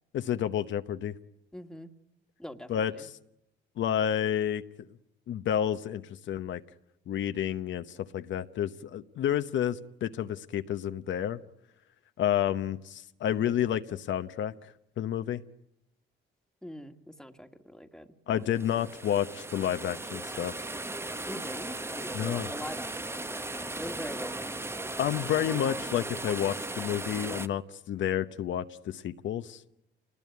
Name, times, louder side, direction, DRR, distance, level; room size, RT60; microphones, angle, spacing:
voice 1, 0.1-1.1 2.7-2.9 3.8-4.6 5.3-6.6 7.1-11.4 12.2-14.5 15.0-15.4 18.3-20.5 22.1-22.5 25.0-29.6, left 10 dB, 70° left, 10 dB, 1.0 m, -30 dB
voice 2, 1.5-1.9 2.4-3.1 16.6-18.9 21.3-24.6, equal, 5° left, 7 dB, 1.8 m, -44 dB
sound 1, 18.5-27.5, right 2 dB, 10° right, 0.9 m, -37 dB
27.5 x 20.0 x 9.5 m, 0.82 s
cardioid pair, 90°, 20 cm